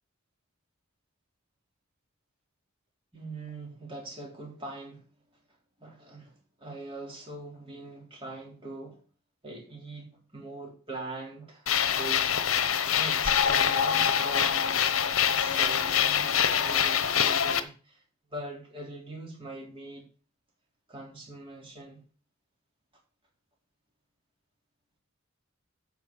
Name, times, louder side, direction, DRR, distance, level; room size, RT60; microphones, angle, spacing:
voice 1, 3.1-5.0 5.8-6.3 6.6-9.0 9.4-12.4 13.0-14.7 15.3-18.0 18.3-20.1 20.9-22.0, right 2 dB, 25° right, 3.6 m, -42 dB
sound 1, 11.7-17.6, left 8 dB, 75° left, 0.9 m, -25 dB
8.8 x 5.3 x 7.2 m
head